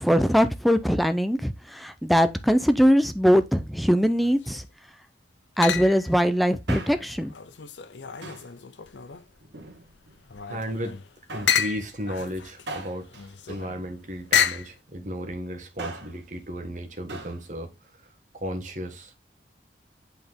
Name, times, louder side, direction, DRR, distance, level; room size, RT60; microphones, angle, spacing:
voice 1, 0.0-4.6 5.6-7.3, equal, ahead, 0.6 m, -21 dB
sound 1, 4.1-4.7 5.6-6.2 6.7-9.4 9.8-14.8, left 8 dB, 90° left, 0.7 m, -30 dB
Male speech man speaking, 6.6-7.3 8.2-8.6 9.4-10.2 11.3-11.7 12.7-14.3 15.6-16.2 17.1-17.4 17.7-17.8, right 2 dB, 90° right, 1.9 m, -40 dB
voice 2, 10.5-11.0 11.3-13.1 13.5-19.1, equal, 45° right, 1.6 m, -34 dB
8.2 x 4.5 x 3.6 m
head